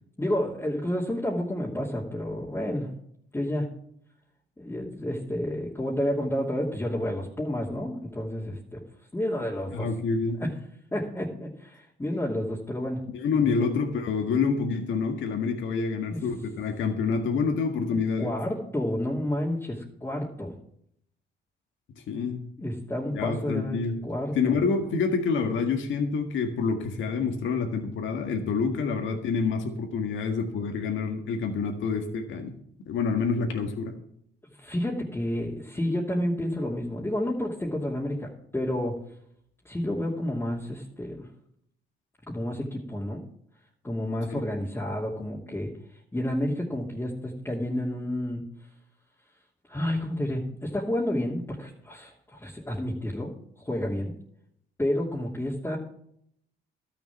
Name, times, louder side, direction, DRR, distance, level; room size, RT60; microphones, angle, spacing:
voice 1, 0.2-2.9 3.3-3.7 4.6-8.8 9.1-9.9 10.4-10.5 10.9-13.0 13.4-13.7 16.1-16.2 17.9-20.5 22.6-23.8 24.0-24.6 34.5-39.0 39.6-41.3 42.3-43.2 43.8-45.7 46.1-48.4 49.7-54.2 54.8-55.8, left 1 dB, 10° left, -5 dB, 2.8 m, -30 dB
voice 2, 9.7-10.4 13.1-18.3 22.0-22.4 23.1-24.0 24.4-32.5 32.9-33.9 44.3-44.4, left 5 dB, 75° left, 3 dB, 1.8 m, -27 dB
13.0 x 7.1 x 7.2 m, 0.69 s
cardioid pair, 90°, 20 cm